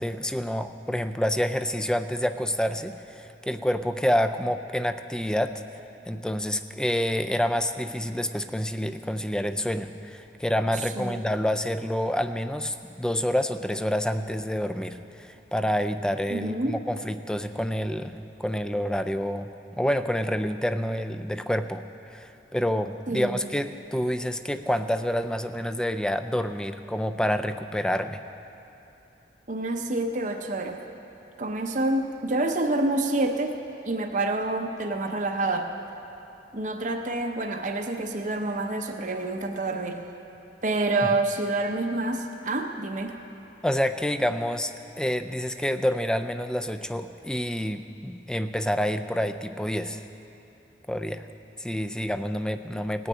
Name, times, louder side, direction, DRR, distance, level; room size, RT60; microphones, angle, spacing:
voice 1, 0.0-5.5 6.1-19.5 19.8-28.2 43.6-44.7 45.0-50.0 50.9-51.3 51.6-53.1, equal, 5° left, 9 dB, 0.4 m, -28 dB
voice 2, 16.3-16.7 23.1-23.4 29.5-30.8 31.4-33.5 33.8-35.7 36.5-40.0 40.6-43.1, right 2 dB, 45° right, 4 dB, 0.7 m, -27 dB
18.5 x 6.3 x 8.6 m, 3.0 s
head